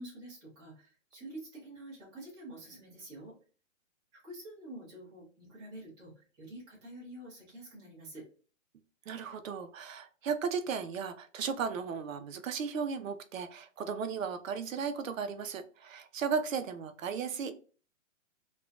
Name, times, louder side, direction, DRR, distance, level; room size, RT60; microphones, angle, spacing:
voice 1, 0.0-3.3 4.1-8.2, right 1 dB, 10° right, -7 dB, 0.8 m, -48 dB
voice 2, 9.1-17.6, right 6 dB, 75° right, 9 dB, 0.5 m, -35 dB
3.1 x 2.2 x 2.4 m, 0.38 s
hypercardioid pair, 165°, 40 cm